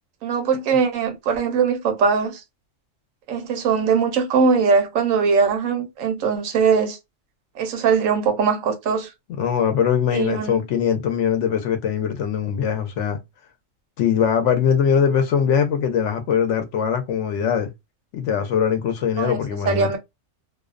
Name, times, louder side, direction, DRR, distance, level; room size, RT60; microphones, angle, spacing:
voice 1, 0.2-2.4 3.3-7.0 7.6-9.1 10.1-10.6 19.2-19.4 19.7-20.0, right 5 dB, 90° right, 1.0 m, -21 dB
voice 2, 9.4-13.2 14.0-17.7 18.1-20.0, left 7 dB, 70° left, 0.9 m, -21 dB
2.6 x 2.0 x 2.3 m
omnidirectional pair, 1.3 m